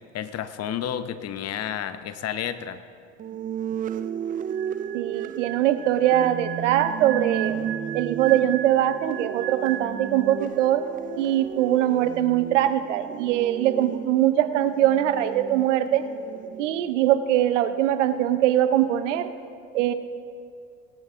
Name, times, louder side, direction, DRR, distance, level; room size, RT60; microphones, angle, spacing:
voice 1, 0.1-2.8, left 9 dB, 45° left, 11 dB, 0.8 m, -31 dB
sound 1, 3.2-16.9, right 9 dB, 25° right, 0.3 m, -34 dB
sound 2, 4.5-10.9 11.1-11.4, right 12 dB, 55° right, 0.7 m, -37 dB
voice 2, 4.9-7.6 7.9-10.8 11.2-16.1 16.6-19.3 19.7-19.9, right 12 dB, 90° right, 12 dB, 0.7 m, -22 dB
19.5 x 9.1 x 3.6 m, 2.3 s
hypercardioid pair, 85°, 36 cm